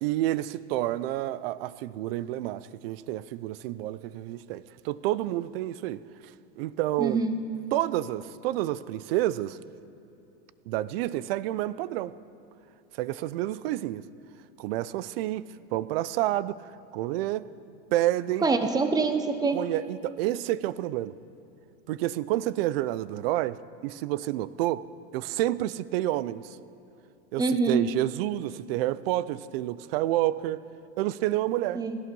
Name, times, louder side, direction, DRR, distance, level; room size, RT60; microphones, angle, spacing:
voice 1, 0.0-6.0 6.6-7.2 7.7-9.6 10.7-12.1 13.0-14.0 14.6-16.6 16.9-17.5 17.9-18.5 19.5-21.2 21.9-24.8 25.1-26.6 27.3-30.6 31.0-31.8, right 15 dB, 60° right, 0.6 m, -29 dB
voice 2, 7.0-7.4 18.4-19.6 27.4-27.8 31.7-32.0, right 4 dB, 10° right, 0.8 m, -25 dB
17.5 x 13.0 x 5.4 m
supercardioid pair, 140°, 33 cm